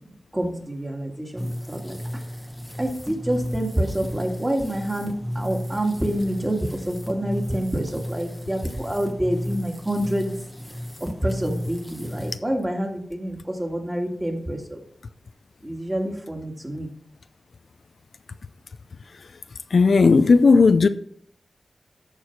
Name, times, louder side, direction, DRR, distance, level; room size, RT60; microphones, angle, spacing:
voice 1, 0.3-2.0 2.8-10.3 11.0-14.8 15.6-16.9, right 1 dB, 15° right, 2.1 m, -27 dB
sound 1, 1.4-12.4, equal, 5° left, 1.1 m, -34 dB
voice 2, 19.7-20.9, left 4 dB, 65° left, 0.5 m, -15 dB
13.5 x 4.7 x 5.9 m
wide cardioid pair, 100°, 0 cm